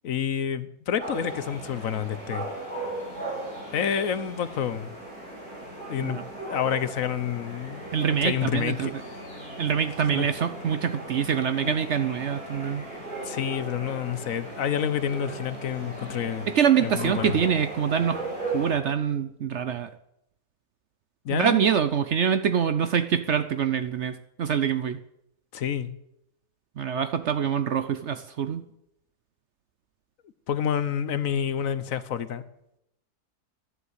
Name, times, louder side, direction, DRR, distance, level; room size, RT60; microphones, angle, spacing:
voice 1, 0.0-2.5 3.7-5.0 5.9-6.2 6.4-8.9 10.1-10.3 11.6-11.8 13.2-16.5 16.8-17.4 21.2-21.6 25.5-25.9 30.5-32.4, left 8 dB, 65° left, 14 dB, 1.2 m, -28 dB
sound 1, 1.0-18.7, right 2 dB, 75° right, 7.8 m, -37 dB
voice 2, 7.9-8.9 9.6-12.9 16.5-18.3 18.5-19.9 21.3-25.0 26.8-28.7, right 8 dB, 60° right, 11 dB, 0.8 m, -25 dB
11.5 x 11.0 x 8.0 m, 0.82 s
omnidirectional pair, 1.6 m